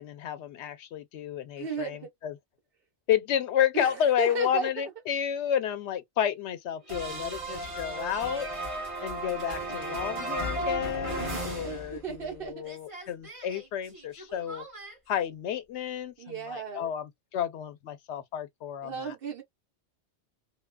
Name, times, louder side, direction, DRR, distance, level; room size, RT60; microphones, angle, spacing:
voice 1, 0.0-2.4 3.1-8.5 9.0-14.7 15.1-19.1, left 9 dB, 85° left, 0.9 m, -31 dB
voice 2, 1.6-2.1 3.7-4.7 11.6-12.6 16.2-16.9 18.8-19.4, right 6 dB, 55° right, 1.2 m, -35 dB
sound 1, 6.9-12.4 12.6-14.9, right 1 dB, 30° right, 1.3 m, -35 dB
2.9 x 2.2 x 2.2 m
omnidirectional pair, 1.2 m